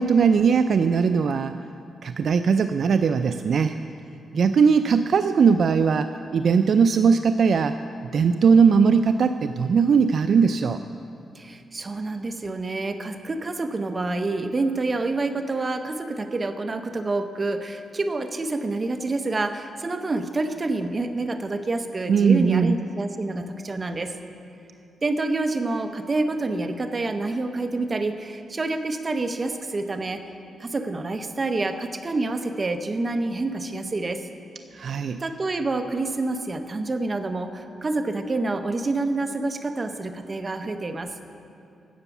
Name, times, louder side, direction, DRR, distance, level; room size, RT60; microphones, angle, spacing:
voice 1, 0.0-1.6 2.0-3.8 4.3-7.8 8.1-10.8 22.1-22.8 34.7-35.2, right 6 dB, 55° right, 9 dB, 0.3 m, -19 dB
voice 2, 11.3-24.2 25.0-30.2 30.6-34.3 35.2-41.1, right 2 dB, 30° right, 7 dB, 0.8 m, -27 dB
12.5 x 8.1 x 7.1 m, 2.7 s
cardioid pair, 120°, 0 cm